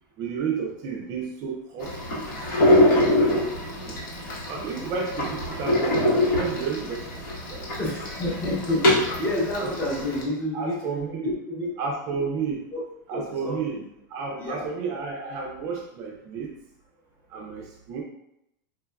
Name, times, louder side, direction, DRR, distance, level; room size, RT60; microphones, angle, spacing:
voice 1, 0.2-2.8 3.9-4.0 4.5-7.2 7.5-7.8 9.6-9.7 10.5-11.3 11.8-12.6 13.1-13.8 14.1-16.5 17.3-18.0, right 5 dB, 35° right, 0 dB, 0.4 m, -32 dB
sound 1, 1.8-10.2, left 1 dB, 85° left, 1.2 m, -24 dB
voice 2, 7.8-10.8 11.2-11.7 12.7-12.8 13.1-13.8 14.4-14.7 17.3-17.4, left 1 dB, 20° left, -3 dB, 0.7 m, -29 dB
4.4 x 2.3 x 2.2 m, 0.81 s
supercardioid pair, 160°, 11 cm